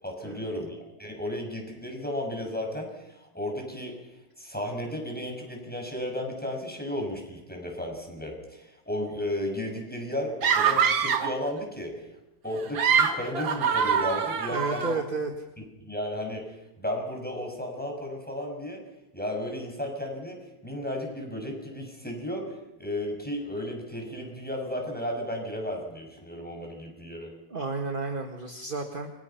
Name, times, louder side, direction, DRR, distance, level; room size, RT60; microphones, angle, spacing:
voice 1, 0.0-4.0 4.4-12.1 12.4-15.0 15.8-18.8 19.1-27.3, left 1 dB, 5° left, 1 dB, 6.6 m, -34 dB
sound 1, 10.4-11.4 12.6-15.0, right 7 dB, 80° right, 2.3 m, -24 dB
voice 2, 14.5-15.3 27.5-29.1, right 3 dB, 30° right, 4 dB, 1.9 m, -32 dB
30.0 x 25.0 x 5.9 m, 0.91 s
omnidirectional pair, 2.1 m